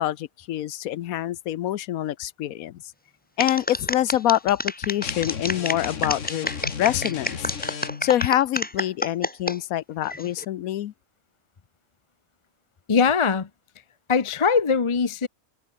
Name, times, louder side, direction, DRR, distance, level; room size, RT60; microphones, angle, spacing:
voice 1, 0.0-2.8 3.4-6.5 6.8-7.5 8.0-10.9, left 12 dB, 85° left, 1.2 m, -25 dB
sound 1, 3.4-9.6 10.0-10.5, left 1 dB, 10° left, 0.9 m, -29 dB
sound 2, 5.0-8.2, left 6 dB, 60° left, 1.9 m, -35 dB
voice 2, 12.9-13.5 14.1-15.3, left 5 dB, 30° left, 0.6 m, -21 dB
omnidirectional pair, 1.4 m